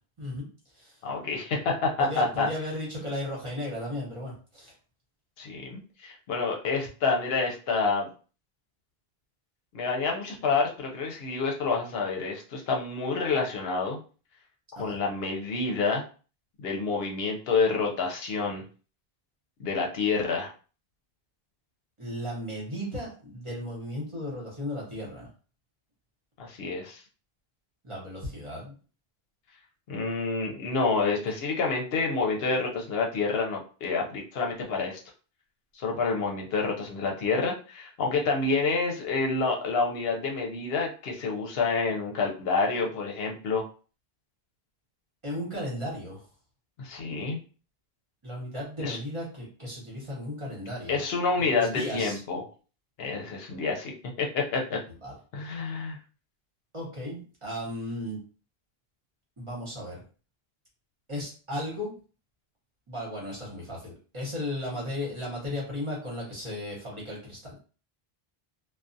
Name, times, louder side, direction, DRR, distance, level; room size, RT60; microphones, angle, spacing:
voice 1, 1.0-2.5 5.4-8.1 9.7-14.0 14.8-16.0 16.6-18.6 19.6-20.5 26.4-27.0 29.9-35.0 35.7-43.6 46.8-47.4 48.8-49.0 50.9-52.4 53.0-54.8 55.3-56.0, left 4 dB, 75° left, 1 dB, 0.8 m, -28 dB
voice 2, 2.0-4.7 14.8-15.0 22.0-25.3 27.8-28.7 45.2-46.2 48.2-51.0 51.4-52.2 55.0-55.1 56.7-58.2 59.4-60.0 61.1-61.9 62.9-67.6, left 1 dB, 30° right, -4 dB, 0.9 m, -35 dB
2.3 x 2.1 x 2.6 m, 0.37 s
omnidirectional pair, 1.0 m